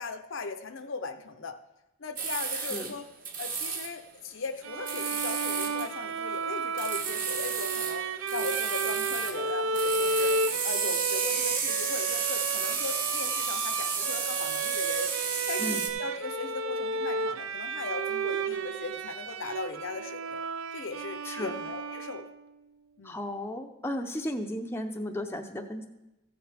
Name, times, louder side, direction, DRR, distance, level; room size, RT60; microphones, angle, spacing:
voice 1, 0.0-1.6 2.0-3.1 3.4-10.3 10.6-15.1 15.5-20.4 20.7-22.2 23.0-23.2, left 4 dB, 60° left, 8 dB, 0.6 m, -38 dB
sound 1, 2.2-2.9 3.2-3.9 4.9-5.9 6.8-8.0 8.3-9.4 9.7-15.9, right 5 dB, 40° right, 1.2 m, -32 dB
voice 2, 2.5-2.9 15.6-15.9 21.2-21.5 23.0-25.9, left 1 dB, 10° left, 3 dB, 0.6 m, -35 dB
Bowed string instrument, 4.6-22.5, right 4 dB, 70° right, 0.5 m, -33 dB
15.0 x 7.9 x 3.4 m, 0.99 s
head